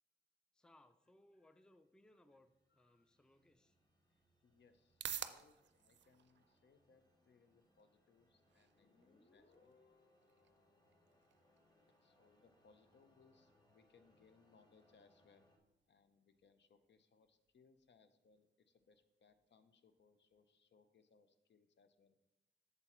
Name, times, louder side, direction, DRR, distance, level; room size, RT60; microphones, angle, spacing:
voice 1, 0.5-3.8, left 1 dB, 5° left, 10 dB, 0.4 m, -68 dB
sound 1, 1.7-15.6, equal, 20° left, 1.2 m, -76 dB
voice 2, 2.7-3.1 4.4-9.8 12.0-15.5 15.9-22.3, left 5 dB, 75° left, 10 dB, 0.6 m, -71 dB
sound 2, 3.5-20.5, right 9 dB, 75° right, 0.4 m, -57 dB
Guitar, 8.8-12.3, left 3 dB, 40° left, 0.7 m, -73 dB
8.1 x 6.9 x 3.0 m, 0.96 s
wide cardioid pair, 85°, 19 cm